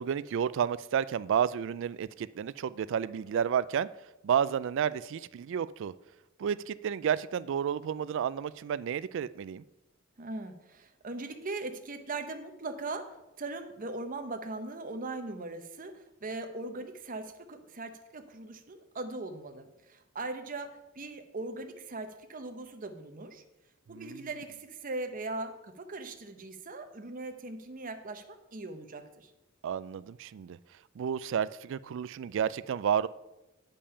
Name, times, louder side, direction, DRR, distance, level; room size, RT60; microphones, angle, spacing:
voice 1, 0.0-3.9 4.2-5.9 6.4-9.6 23.9-24.3 29.6-30.6 31.0-33.1, right 8 dB, 65° right, 0.3 m, -31 dB
voice 2, 10.2-13.0 13.4-20.7 20.9-23.4 23.9-29.3, right 2 dB, 40° right, 0.8 m, -40 dB
8.6 x 5.3 x 5.6 m
head